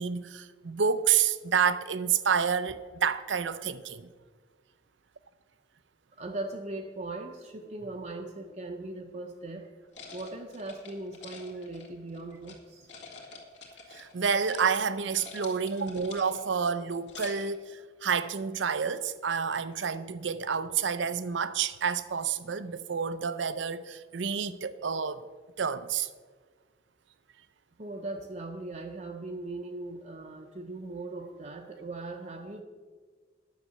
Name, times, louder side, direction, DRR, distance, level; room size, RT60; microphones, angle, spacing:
voice 1, 0.0-4.1 13.9-25.2 25.6-26.1, right 6 dB, 75° right, 0.6 m, -29 dB
voice 2, 6.2-9.7 10.1-12.9 27.8-32.6, right 2 dB, 40° right, 0.7 m, -39 dB
sound 1, 9.9-12.6 12.9-14.1 14.4-14.7 15.0-16.5 16.9-17.6, left 4 dB, 70° left, 2.1 m, -47 dB
10.0 x 6.6 x 7.8 m
head